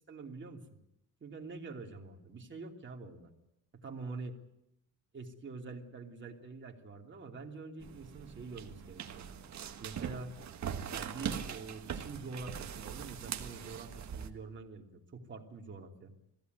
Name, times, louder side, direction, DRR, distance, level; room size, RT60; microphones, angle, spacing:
voice 1, 0.1-0.8 1.2-3.3 3.8-4.4 5.1-9.3 9.8-10.3 10.9-16.1, right 3 dB, 30° right, 2 dB, 3.0 m, -46 dB
sound 1, 7.8-14.3, right 8 dB, 45° right, 1.7 m, -41 dB
21.0 x 16.5 x 9.5 m, 0.83 s
cardioid pair, 135°, 37 cm